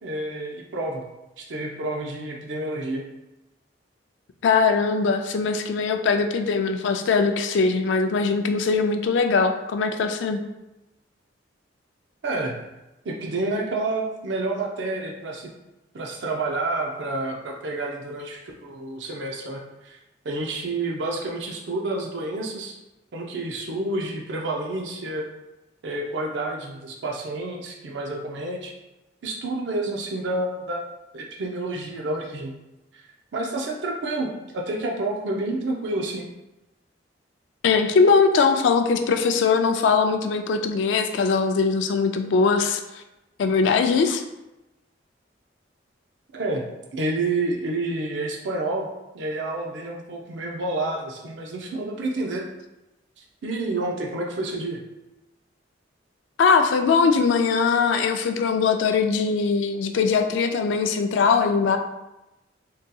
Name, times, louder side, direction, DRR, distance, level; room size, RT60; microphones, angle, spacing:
voice 1, 0.0-1.1 1.4-3.1 12.2-12.7 13.0-15.5 15.9-20.0 20.2-22.8 23.1-25.3 25.8-28.7 29.2-32.5 33.3-36.3 46.3-46.7 46.9-52.5 53.2-54.8, right 2 dB, 70° right, 0 dB, 0.5 m, -29 dB
voice 2, 4.4-10.4 37.6-42.8 43.4-44.2 56.4-61.8, left 5 dB, 75° left, 6 dB, 0.3 m, -21 dB
3.8 x 2.7 x 2.2 m, 0.96 s
head